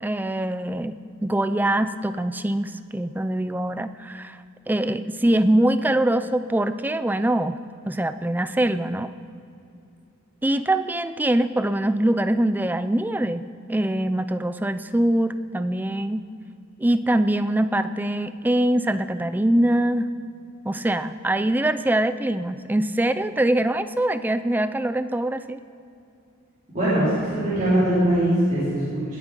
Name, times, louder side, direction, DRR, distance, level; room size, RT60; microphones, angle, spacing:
voice 1, 0.0-0.9 1.2-4.4 4.7-7.6 7.9-9.1 10.4-16.2 16.8-20.1 20.6-25.6, right 1 dB, 10° right, 12 dB, 0.4 m, -23 dB
voice 2, 26.7-29.2, right 1 dB, 35° right, -12 dB, 4.1 m, -21 dB
20.0 x 8.2 x 5.2 m, 2.6 s
head